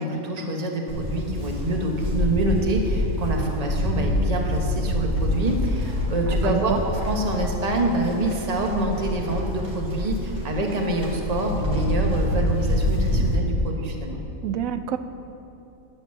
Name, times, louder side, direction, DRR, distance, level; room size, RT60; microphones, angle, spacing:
voice 1, 0.0-14.2, right 1 dB, 30° right, 1 dB, 1.2 m, -26 dB
Livestock farm animals working animals, 0.9-13.4, left 1 dB, 55° right, 2.5 m, -26 dB
voice 2, 6.3-6.8 14.4-15.0, right 10 dB, 70° right, 10 dB, 0.9 m, -27 dB
11.0 x 9.0 x 7.0 m, 2.8 s
omnidirectional pair, 1.5 m